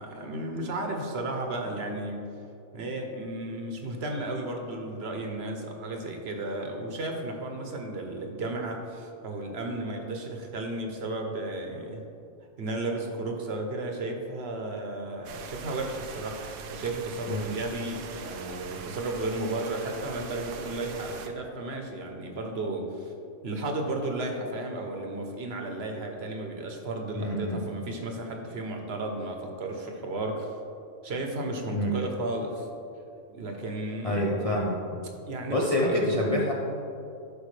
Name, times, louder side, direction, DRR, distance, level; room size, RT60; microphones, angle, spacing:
voice 1, 0.0-2.2 2.7-12.0 12.6-23.1 23.4-30.6 31.0-32.7 33.3-34.3 35.3-36.1, right 2 dB, 50° right, 3 dB, 1.0 m, -34 dB
sound 1, 15.2-21.3, right 5 dB, 80° right, 1.1 m, -42 dB
voice 2, 27.1-27.6 31.7-31.9 34.0-35.0 35.5-36.5, left 1 dB, 40° left, -3 dB, 0.5 m, -27 dB
11.5 x 5.1 x 3.2 m, 2.6 s
omnidirectional pair, 1.5 m